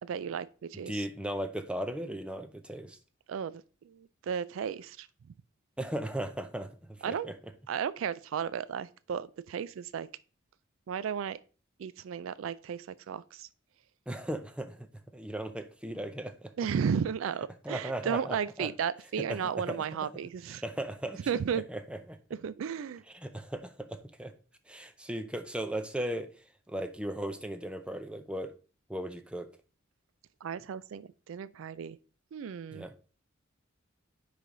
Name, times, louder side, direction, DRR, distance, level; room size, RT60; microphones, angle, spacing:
voice 1, 0.0-1.0 3.3-5.1 7.0-7.3 7.7-10.1 10.9-11.4 11.8-13.5 16.6-20.6 21.3-21.6 22.4-23.0 30.4-32.0 32.3-32.9, right 7 dB, 70° right, 0.3 m, -34 dB
voice 2, 0.9-3.0 5.8-7.3 14.1-14.9 15.1-16.5 17.6-18.7 19.2-20.1 20.5-22.2 23.1-24.3 24.7-26.3 26.7-28.5 28.9-29.5 32.7-32.9, right 1 dB, 5° right, 0.5 m, -37 dB
9.8 x 3.4 x 3.8 m
head